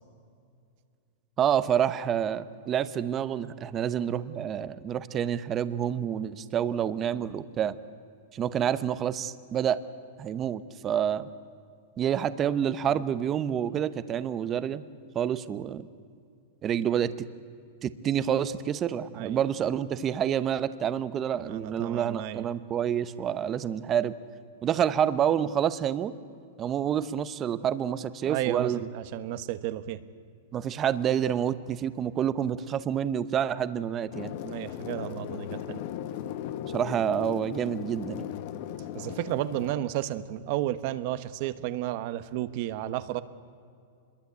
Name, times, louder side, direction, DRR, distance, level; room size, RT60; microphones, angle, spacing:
voice 1, 1.4-7.8 8.3-9.8 10.2-11.3 12.0-14.8 15.1-15.9 16.6-17.3 17.8-24.1 24.6-26.1 26.6-28.9 30.5-34.3 36.7-38.3, right 9 dB, 25° right, 14 dB, 0.9 m, -28 dB
voice 2, 21.3-22.5 28.2-30.0 34.4-35.8 38.9-43.2, right 13 dB, 45° right, 13 dB, 1.1 m, -32 dB
sound 1, 34.1-39.7, left 11 dB, 50° left, 1.3 m, -37 dB
26.0 x 22.0 x 8.3 m, 2.4 s
supercardioid pair, 155°, 0 cm